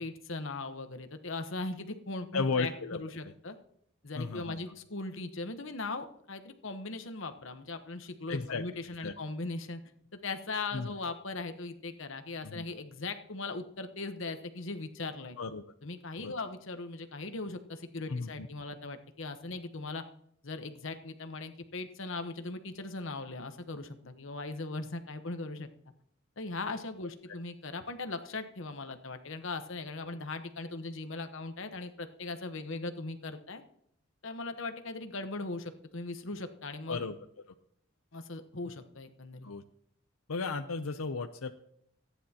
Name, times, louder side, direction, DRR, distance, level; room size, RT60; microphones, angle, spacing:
voice 1, 0.0-3.6 4.0-9.8 10.2-15.4 15.8-20.0 20.4-25.7 26.4-33.6 34.2-37.0 38.1-39.5, left 3 dB, 70° left, 8 dB, 1.1 m, -39 dB
voice 2, 2.3-3.3 4.1-4.6 8.3-8.6 9.0-9.1 10.7-10.9 12.4-12.7 15.4-15.6 16.2-16.3 18.1-18.5 36.9-37.2 39.4-39.6 40.3-41.5, left 4 dB, 90° left, 7 dB, 0.7 m, -34 dB
26.5 x 10.0 x 2.9 m, 0.72 s
head